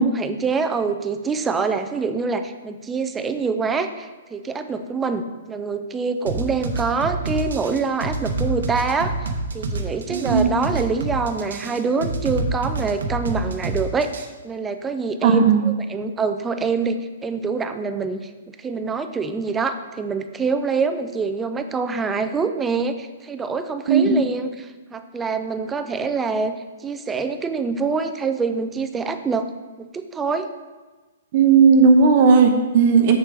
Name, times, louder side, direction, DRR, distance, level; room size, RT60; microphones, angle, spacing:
voice 1, 0.0-14.1 14.4-29.5 29.8-30.5, right 4 dB, 10° right, 8 dB, 0.4 m, -25 dB
sound 1, 6.3-14.3, right 3 dB, 85° right, 1.0 m, -27 dB
voice 2, 10.1-10.5 15.2-15.7 23.9-24.4 31.3-33.2, right 5 dB, 40° right, 5 dB, 0.8 m, -15 dB
7.3 x 7.2 x 3.5 m, 1.3 s
hypercardioid pair, 160°, 0 cm